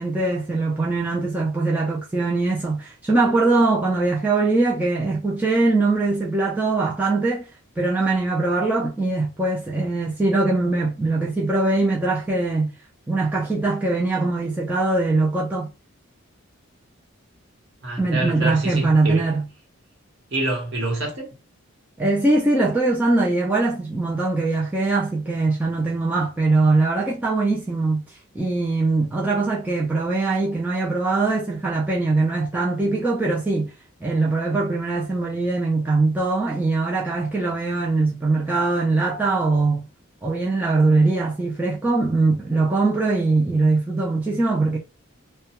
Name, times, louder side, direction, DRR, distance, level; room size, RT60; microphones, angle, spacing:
voice 1, 0.0-7.5 7.8-12.7 13.1-15.7 18.0-19.5 22.0-33.7 34.0-39.9 40.2-44.8, right 3 dB, 10° right, 0.3 m, -22 dB
voice 2, 17.8-19.3 20.3-21.3, right 2 dB, 55° right, 1.1 m, -26 dB
2.2 x 2.2 x 2.8 m
head